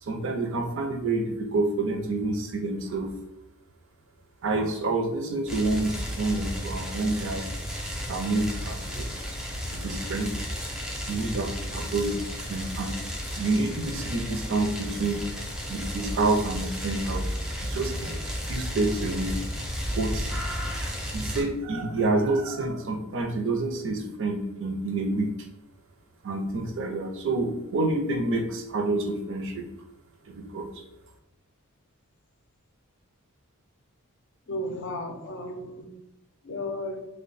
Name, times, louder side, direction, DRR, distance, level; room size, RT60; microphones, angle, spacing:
voice 1, 0.0-3.1 4.4-7.4 8.1-9.1 9.7-10.3 11.1-12.9 13.4-15.2 15.7-17.3 17.6-18.2 18.5-19.4 20.0-20.3 21.1-25.3 26.2-29.7 30.3-30.7, right 2 dB, 60° right, 4 dB, 0.5 m, -28 dB
sound 1, 5.5-21.4, equal, 5° right, 0.5 m, -33 dB
voice 2, 34.5-35.9 36.4-37.0, left 1 dB, 55° left, 5 dB, 0.5 m, -34 dB
3.1 x 2.1 x 4.0 m, 0.88 s
head